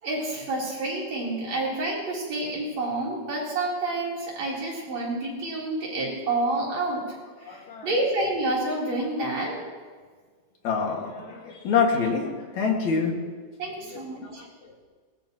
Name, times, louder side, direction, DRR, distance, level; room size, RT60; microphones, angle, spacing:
voice 1, 0.0-7.0 7.4-9.6 13.0-13.1 13.6-14.4, right 2 dB, 60° right, -5 dB, 5.1 m, -29 dB
voice 2, 7.4-8.0 8.9-9.1 10.6-13.1 13.8-14.8, left 5 dB, 65° left, 0 dB, 3.4 m, -27 dB
21.5 x 20.0 x 3.1 m, 1.5 s
omnidirectional pair, 3.6 m